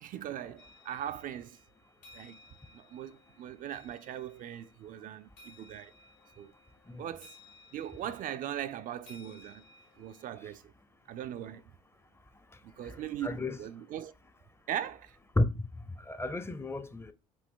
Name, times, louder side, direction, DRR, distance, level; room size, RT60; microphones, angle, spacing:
voice 1, 0.0-1.6 2.1-2.4 2.7-5.9 6.4-6.5 7.0-7.4 7.7-9.6 10.0-10.6 11.1-11.6 12.6-14.1 14.7-15.2, right 10 dB, 50° right, 0.4 m, -40 dB
sound 1, 0.6-10.3, left 2 dB, 70° left, 1.6 m, -59 dB
voice 2, 12.8-13.6 15.4-15.6 16.0-17.1, left 2 dB, 15° left, 0.6 m, -32 dB
5.1 x 2.5 x 3.7 m
hypercardioid pair, 55°, 18 cm